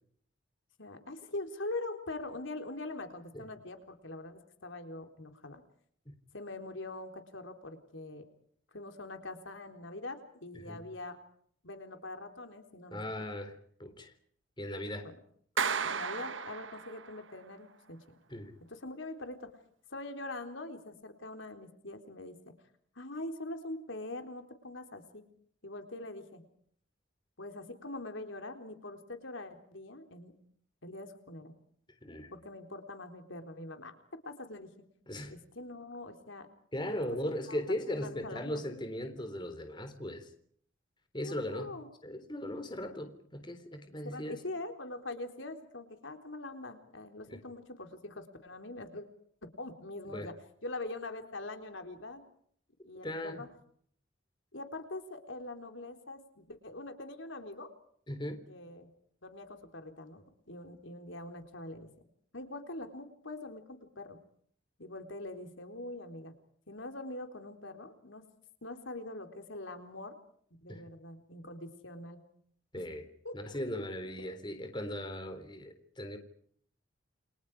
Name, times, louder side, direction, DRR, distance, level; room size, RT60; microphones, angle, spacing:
voice 1, 0.8-5.6 6.3-8.3 8.7-11.2 11.6-13.0 15.0-15.2 15.8-18.0 18.7-19.5 19.9-22.5 23.0-25.2 25.6-26.4 27.4-30.3 30.8-31.5 32.3-33.9 34.2-34.9 35.3-36.5 36.9-38.6 41.2-41.9 43.9-49.0 49.4-50.4 50.6-52.2 52.8-53.5 54.5-57.7 58.5-58.9 59.2-61.9 62.3-64.2 64.8-66.3 66.7-68.2 68.6-70.1 70.6-72.2 72.8-72.9 73.2-73.4 74.2-74.3, left 2 dB, 75° left, 6 dB, 4.0 m, -43 dB
voice 2, 12.9-14.1 14.6-15.1 18.3-18.5 32.0-32.3 35.1-35.4 36.7-40.3 41.1-41.8 42.0-44.4 47.3-47.4 50.1-50.3 53.0-53.4 58.1-58.4 70.7-70.8 72.7-73.0 73.3-76.2, left 1 dB, 25° left, 7 dB, 3.7 m, -38 dB
Clapping, 15.6-17.2, right 6 dB, 75° right, 1.5 m, -34 dB
30.0 x 26.5 x 5.0 m, 0.62 s
head